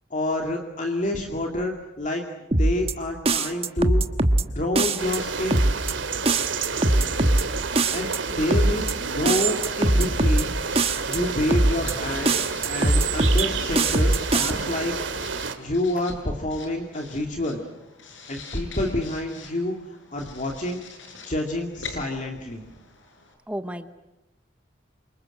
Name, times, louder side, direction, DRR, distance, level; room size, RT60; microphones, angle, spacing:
voice 1, 0.1-2.2 2.6-4.0 4.5-5.8 7.9-10.5 11.1-12.4 12.7-14.9 15.6-17.6 18.3-19.7 20.1-20.8 21.2-22.6, left 1 dB, 40° left, 1 dB, 2.5 m, -28 dB
sound 1, 2.5-2.9 3.3-4.4 4.8-5.2 5.5-5.9 6.3-7.4 7.7-8.2 8.5-8.9 9.3-10.4 10.8-11.2 11.5-11.9 12.2-13.4 13.7-14.5, right 2 dB, 30° right, 1.4 m, -21 dB
sound 2, 5.0-15.5, right 5 dB, 85° right, 2.5 m, -30 dB
voice 2, 8.3-8.9 23.5-23.9, equal, 5° right, 9 dB, 1.0 m, -35 dB
Writing, 10.1-23.3, left 4 dB, 85° left, 7.0 m, -45 dB
29.0 x 25.5 x 7.8 m, 0.99 s
head